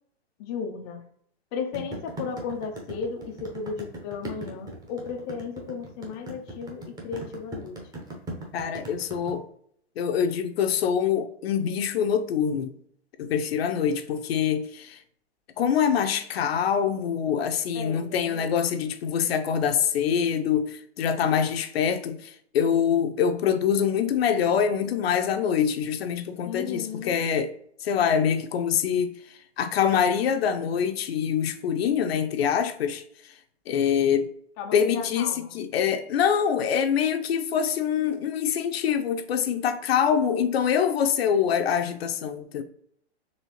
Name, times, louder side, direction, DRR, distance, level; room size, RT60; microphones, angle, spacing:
voice 1, 0.4-1.0 1.5-7.8 17.7-18.7 26.4-27.2 34.6-35.5, left 5 dB, 25° left, 0.4 m, -35 dB
sound 1, 1.7-9.3, right 1 dB, 10° right, 0.8 m, -38 dB
voice 2, 8.5-9.4 10.0-12.7 13.2-15.0 15.6-27.5 27.8-29.1 29.6-33.0 33.7-34.3 34.7-42.6, left 8 dB, 65° left, 0.6 m, -25 dB
4.2 x 3.0 x 3.0 m
hypercardioid pair, 140°, 33 cm